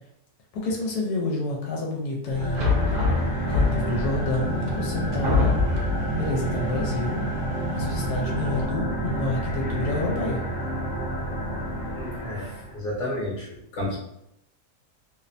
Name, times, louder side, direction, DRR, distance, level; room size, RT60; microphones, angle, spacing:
voice 1, 0.5-2.8 3.5-5.6 6.2-7.2 7.7-10.4, left 2 dB, 90° left, -1 dB, 1.1 m, -29 dB
sound 1, 2.3-12.8, right 1 dB, 15° left, 0.7 m, -30 dB
sound 2, 2.3-8.7, equal, 80° right, 1.1 m, -33 dB
sound 3, 2.5-4.1 4.7-4.8 5.2-6.1, left 3 dB, 60° right, 1.0 m, -23 dB
voice 2, 11.9-14.0, left 1 dB, 60° left, -5 dB, 0.9 m, -32 dB
2.7 x 2.1 x 2.5 m, 0.81 s
omnidirectional pair, 1.6 m